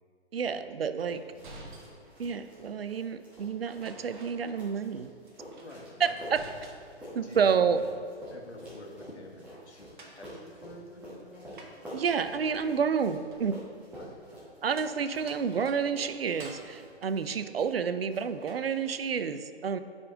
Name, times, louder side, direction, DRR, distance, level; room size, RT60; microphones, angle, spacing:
voice 1, 0.3-1.2 2.2-5.1 6.0-6.4 7.1-7.8 11.9-13.6 14.6-19.8, right 6 dB, 60° right, 11 dB, 0.5 m, -29 dB
sound 1, 1.0-2.6 3.7-5.0 5.3-7.1 7.5-8.3 9.7-18.0 18.4-19.0, right 2 dB, 45° right, 1.1 m, -52 dB
sound 2, 1.1-17.8 18.1-18.8, equal, 5° right, 1.3 m, -49 dB
voice 2, 5.5-6.2 7.2-7.9 8.3-11.6 13.9-14.2, left 1 dB, 80° left, 0 dB, 1.5 m, -48 dB
9.6 x 5.1 x 3.8 m, 2.2 s
figure-of-eight pair, 135°, 33 cm